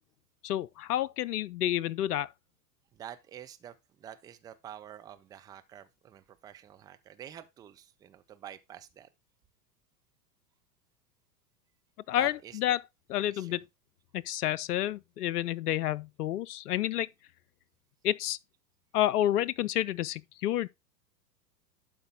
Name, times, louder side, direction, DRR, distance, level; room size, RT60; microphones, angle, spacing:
voice 1, 0.4-2.3 12.1-12.8 13.1-13.6 14.1-17.1 18.0-18.4 18.9-20.7, left 13 dB, 75° left, 0.6 m, -29 dB
voice 2, 2.9-9.1 12.2-12.8 13.1-13.6, right 10 dB, 10° right, 0.3 m, -48 dB
12.0 x 5.0 x 3.4 m
figure-of-eight pair, 95°, 48 cm